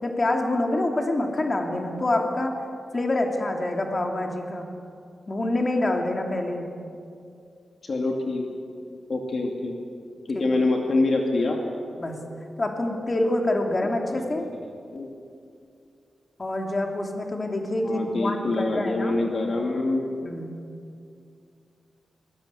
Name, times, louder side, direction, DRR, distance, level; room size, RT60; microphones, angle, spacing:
voice 1, 0.0-2.5 2.9-4.7 5.3-6.7 10.3-10.4 12.0-12.2 12.6-14.5 16.4-19.2 20.2-20.5, left 1 dB, 30° left, 2 dB, 2.8 m, -26 dB
voice 2, 7.8-8.5 9.1-9.7 10.3-11.6 13.8-13.9 14.4-14.5 14.9-15.1 17.8-20.0, left 2 dB, 45° left, 1 dB, 2.5 m, -25 dB
22.5 x 21.0 x 8.4 m, 2.4 s
wide cardioid pair, 130°, 0 cm